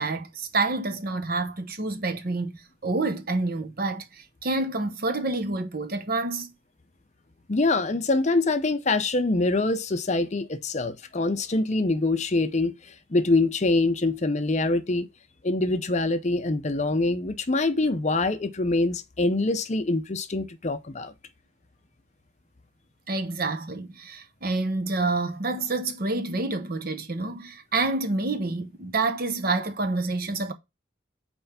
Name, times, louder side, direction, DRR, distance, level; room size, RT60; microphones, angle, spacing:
voice 1, 0.0-6.5 23.1-30.5, right 3 dB, 45° right, 1.0 m, -28 dB
voice 2, 7.5-15.1 15.4-21.1, left 2 dB, 35° left, 0.6 m, -25 dB
5.6 x 4.4 x 5.7 m
head